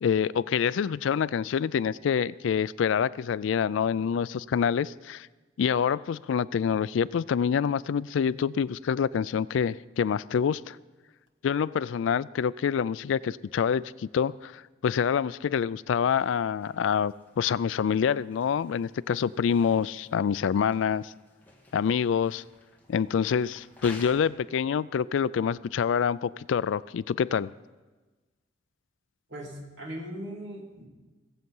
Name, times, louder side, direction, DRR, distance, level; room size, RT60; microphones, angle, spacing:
voice 1, 0.0-5.3 5.6-10.8 11.4-21.1 21.7-22.4 22.9-27.5, left 7 dB, 70° left, 0.3 m, -26 dB
sound 1, 16.1-24.1, left 2 dB, 10° left, 1.7 m, -53 dB
voice 2, 29.3-30.9, equal, 65° right, 2.6 m, -39 dB
17.5 x 7.8 x 5.5 m
head